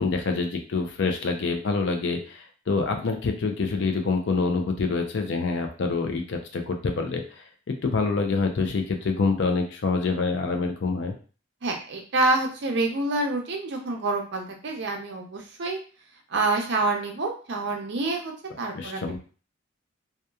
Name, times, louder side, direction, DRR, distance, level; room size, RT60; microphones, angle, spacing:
voice 1, 0.0-7.4 7.8-11.1 18.7-19.2, left 4 dB, 60° left, 4 dB, 0.5 m, -26 dB
voice 2, 11.6-15.8 16.3-18.3 18.6-19.2, right 2 dB, 55° right, 2 dB, 0.6 m, -27 dB
2.8 x 2.3 x 2.3 m, 0.38 s
head